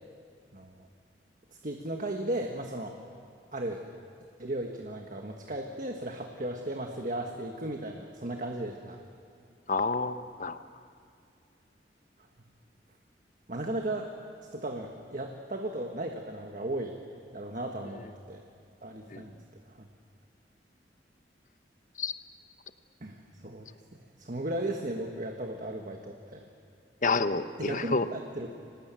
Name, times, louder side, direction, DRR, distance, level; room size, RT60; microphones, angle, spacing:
voice 1, 0.5-0.9 1.6-3.0 3.5-3.8 4.4-9.0 13.5-14.1 14.5-17.0 17.3-18.4 18.8-19.8 23.0-26.4 27.6-28.5, right 1 dB, 50° right, 3 dB, 1.5 m, -36 dB
voice 2, 9.7-10.6 19.1-19.2 22.0-22.1 27.0-28.1, left 3 dB, 45° left, 11 dB, 0.9 m, -29 dB
25.0 x 19.0 x 8.9 m, 2.4 s
head